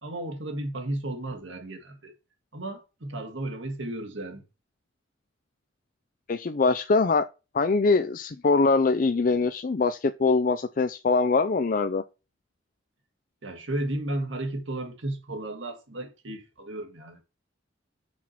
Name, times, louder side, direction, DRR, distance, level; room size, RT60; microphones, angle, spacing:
voice 1, 0.0-2.1 2.5-4.4 13.4-17.2, right 1 dB, 85° right, 2.0 m, -34 dB
voice 2, 6.3-7.3 7.5-12.0, left 4 dB, 45° left, 0.5 m, -23 dB
6.2 x 4.2 x 5.9 m
head